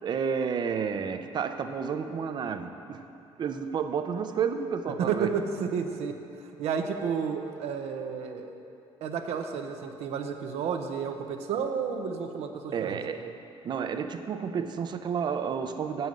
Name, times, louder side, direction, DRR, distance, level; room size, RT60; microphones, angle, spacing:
voice 1, 0.0-3.1 3.4-5.3 12.7-13.4 13.6-16.1, right 6 dB, 45° right, 8 dB, 0.5 m, -31 dB
voice 2, 5.0-8.5 9.0-13.0, right 6 dB, 80° right, 5 dB, 0.7 m, -31 dB
7.7 x 5.5 x 7.5 m, 2.7 s
cardioid pair, 125°, 11 cm